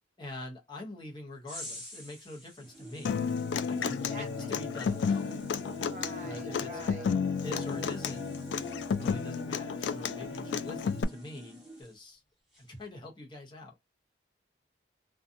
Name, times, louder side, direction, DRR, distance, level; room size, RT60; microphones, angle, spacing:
voice 1, 0.2-3.3 3.6-5.4 6.2-6.7 7.4-8.2 8.9-12.2 12.6-13.8, left 1 dB, 25° left, 0.7 m, -44 dB
sound 1, 1.5-12.2 12.5-12.9, left 1 dB, ahead, 1.1 m, -52 dB
sound 2, 2.6-11.8, equal, 20° right, 0.5 m, -44 dB
Human voice / Acoustic guitar, 3.0-11.0, left 6 dB, 75° left, 0.3 m, -32 dB
voice 2, 4.1-4.5 5.9-7.1 10.5-10.6, right 1 dB, 40° right, 0.9 m, -47 dB
2.6 x 2.3 x 2.4 m
head